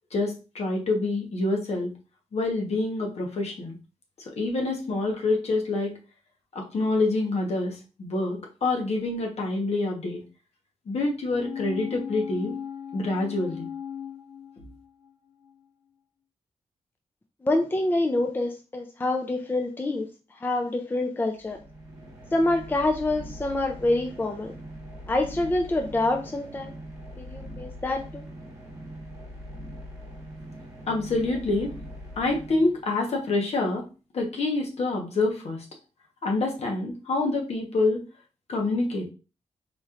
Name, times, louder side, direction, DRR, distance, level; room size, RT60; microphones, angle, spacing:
voice 1, 0.1-1.9 2.3-3.8 4.3-6.0 6.5-10.2 10.9-12.5 12.9-13.7 30.9-31.7 32.2-33.9 34.1-35.6 36.2-38.0 38.5-39.1, left 2 dB, 60° left, 0 dB, 1.0 m, -27 dB
sound 1, 11.3-15.1 15.4-15.5, left 8 dB, 80° left, 1.3 m, -37 dB
voice 2, 17.4-20.1 20.4-21.6 22.3-24.5 25.1-26.7 27.2-28.3, left 2 dB, 15° left, 5 dB, 0.4 m, -26 dB
sound 2, 21.4-33.2, equal, 30° right, 1.2 m, -42 dB
4.2 x 3.0 x 2.4 m, 0.33 s
wide cardioid pair, 135°, 12 cm